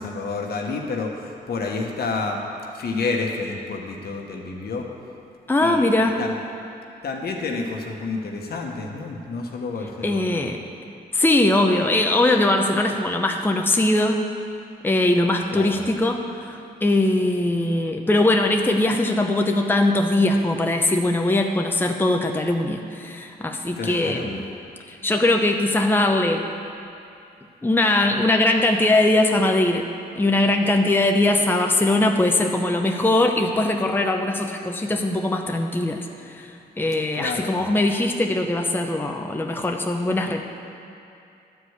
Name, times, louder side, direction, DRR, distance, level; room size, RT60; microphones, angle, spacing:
voice 1, 0.0-2.4 2.7-4.8 5.6-6.3 7.0-10.4 15.5-15.8 23.8-24.3 37.2-37.5, left 3 dB, 65° left, 1 dB, 1.3 m, -29 dB
voice 2, 5.5-6.2 10.0-10.6 11.1-14.2 14.8-24.4 24.9-26.4 27.6-29.9 30.2-36.1 36.3-36.5 36.8-40.4, left 2 dB, 10° left, 3 dB, 0.7 m, -21 dB
11.5 x 4.9 x 8.1 m, 2.6 s
cardioid pair, 70°, 18 cm